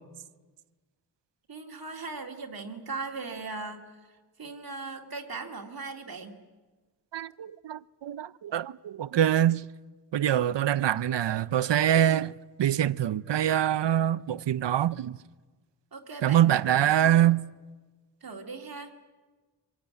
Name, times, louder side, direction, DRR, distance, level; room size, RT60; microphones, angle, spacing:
voice 1, 1.5-4.1 4.4-6.4 15.9-17.2 18.2-18.9, right 3 dB, 55° right, 2.3 m, -39 dB
voice 2, 7.1-9.7 10.1-12.3 12.6-15.2 16.2-17.4, right 11 dB, 80° right, 0.7 m, -24 dB
25.0 x 19.5 x 9.3 m
wide cardioid pair, 175°, 42 cm